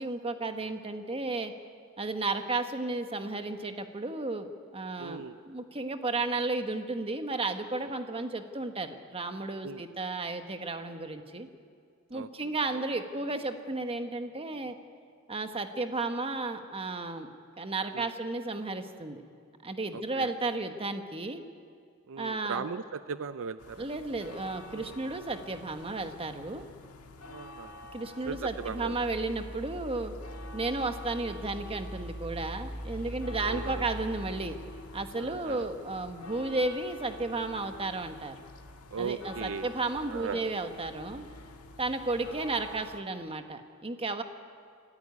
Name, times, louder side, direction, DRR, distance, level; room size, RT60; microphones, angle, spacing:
voice 1, 0.0-1.5 2.0-11.5 12.1-14.7 15.3-17.3 17.6-19.2 19.6-21.4 22.2-22.7 23.8-26.6 27.9-30.1 30.5-34.6 34.9-38.4 39.0-41.2 41.8-44.2, right 3 dB, 25° right, 7 dB, 1.3 m, -33 dB
voice 2, 5.0-5.4 8.1-8.2 9.6-9.8 12.1-12.3 12.7-12.9 17.9-18.1 19.9-20.3 22.1-23.9 24.7-25.0 27.3-27.8 28.3-29.0 31.2-31.4 33.4-33.9 35.2-35.7 38.9-39.7 40.1-40.5, right 6 dB, 65° right, 12 dB, 0.5 m, -38 dB
sound 1, 23.6-43.0, left 1 dB, 85° left, 1.7 m, -48 dB
sound 2, 28.2-36.5 36.9-37.0, equal, 15° left, 7.9 m, -42 dB
26.0 x 14.5 x 9.7 m, 2.3 s
head